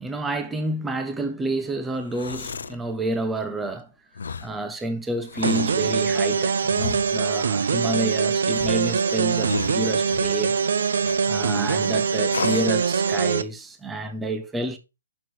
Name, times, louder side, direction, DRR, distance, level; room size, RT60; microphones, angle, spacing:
voice 1, 0.0-3.9 4.4-10.6 11.3-14.8, right 2 dB, 5° right, 0.5 m, -29 dB
sound 1, 1.9-2.8 4.1-4.6 5.2-5.8 6.7-7.3 8.5-10.4 11.0-11.6 12.3-12.8, left 5 dB, 75° left, 0.6 m, -33 dB
sound 2, 5.4-13.4, right 6 dB, 60° right, 0.6 m, -23 dB
6.1 x 4.7 x 4.5 m
hypercardioid pair, 175°, 0 cm